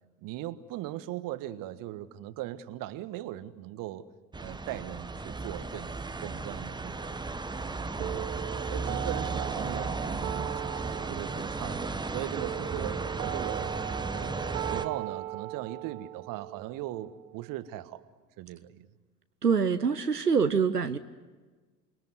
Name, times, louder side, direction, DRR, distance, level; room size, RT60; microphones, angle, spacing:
voice 1, 0.2-4.1 4.4-7.2 7.7-8.3 8.7-13.7 14.1-18.0 18.4-18.9, right 14 dB, 45° right, 14 dB, 1.5 m, -39 dB
sound 1, 4.3-14.8, right 3 dB, 10° right, 1.3 m, -35 dB
sound 2, 8.0-18.0, right 18 dB, 60° right, 1.0 m, -39 dB
voice 2, 19.4-21.0, right 6 dB, 90° right, 10 dB, 0.9 m, -25 dB
28.0 x 22.0 x 9.6 m, 1.3 s
figure-of-eight pair, 65°, 46 cm